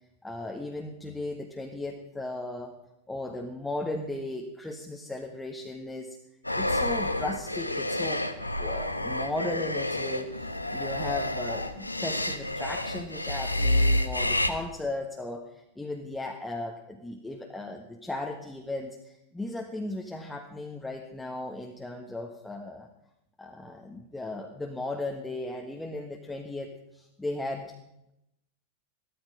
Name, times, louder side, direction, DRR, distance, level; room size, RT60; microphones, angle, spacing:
voice 1, 0.2-2.7 3.1-6.2 6.5-8.2 8.6-22.9 23.4-27.7, left 2 dB, 5° left, 2 dB, 1.4 m, -36 dB
sound 1, 6.4-14.5, left 1 dB, 85° left, 1.1 m, -29 dB
15.5 x 13.5 x 4.9 m, 0.84 s
figure-of-eight pair, 90°, 0 cm